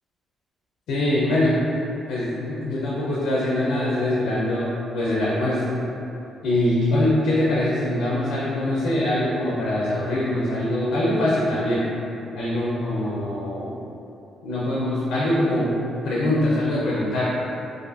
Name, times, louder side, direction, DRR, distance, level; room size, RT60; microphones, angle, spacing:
voice 1, 0.9-1.6 2.1-5.8 6.4-11.8 12.4-13.8 14.4-15.8 16.0-17.2, left 1 dB, 85° left, -7 dB, 0.4 m, -23 dB
2.4 x 2.3 x 2.4 m, 2.8 s
cardioid pair, 90°, 0 cm